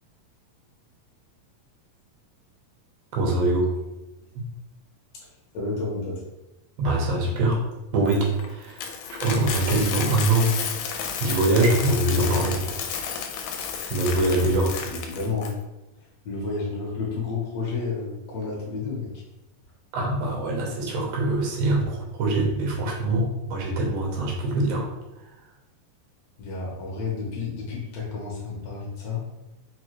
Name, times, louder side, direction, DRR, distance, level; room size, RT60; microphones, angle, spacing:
voice 1, 3.1-3.7 4.4-4.5 6.8-7.6 7.9-10.5 10.9-12.6 12.9-13.0 13.9-14.8 19.9-24.9, right 2 dB, 90° right, -1 dB, 2.5 m, -23 dB
voice 2, 5.5-6.2 14.5-15.5 16.2-19.2 26.4-29.2, left 4 dB, 65° left, -4 dB, 1.7 m, -31 dB
Coin (dropping), 8.1-15.5, left 7 dB, 80° left, 2.1 m, -32 dB
5.6 x 2.3 x 2.9 m, 0.98 s
omnidirectional pair, 3.8 m